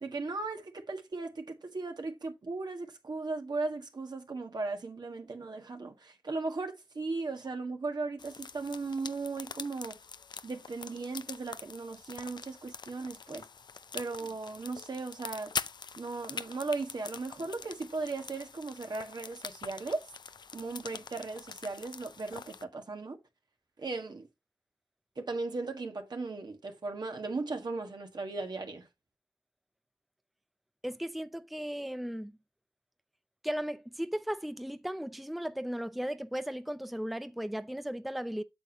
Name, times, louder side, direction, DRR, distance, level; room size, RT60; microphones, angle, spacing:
voice 1, 0.0-10.0 10.4-13.5 13.9-15.5 16.0-20.1 20.5-23.2 23.8-24.3 25.2-28.9, right 3 dB, 65° right, 1.6 m, -37 dB
sound 1, 8.2-22.6, left 5 dB, 70° left, 0.5 m, -44 dB
voice 2, 30.8-32.4 33.4-38.4, equal, ahead, 0.5 m, -36 dB
8.1 x 7.2 x 2.9 m
wide cardioid pair, 65°, 8 cm